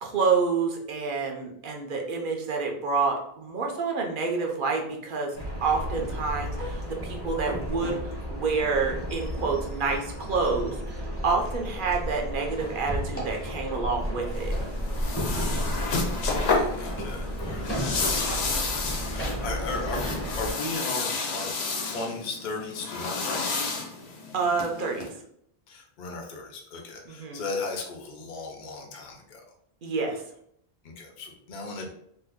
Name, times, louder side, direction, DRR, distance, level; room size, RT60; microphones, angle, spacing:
voice 1, 0.0-5.3 5.6-8.0 8.3-14.5 24.3-25.1 27.1-27.4 29.8-30.2, right 4 dB, 60° right, 2 dB, 0.7 m, -28 dB
sound 1, 5.3-20.5, equal, 15° left, 0.8 m, -32 dB
sound 2, 14.3-25.1, left 4 dB, 85° left, 0.9 m, -31 dB
voice 2, 16.2-21.5 21.9-23.7 25.7-29.4 30.8-31.9, left 3 dB, 55° left, 0 dB, 0.7 m, -36 dB
2.7 x 2.3 x 3.5 m, 0.70 s
omnidirectional pair, 1.1 m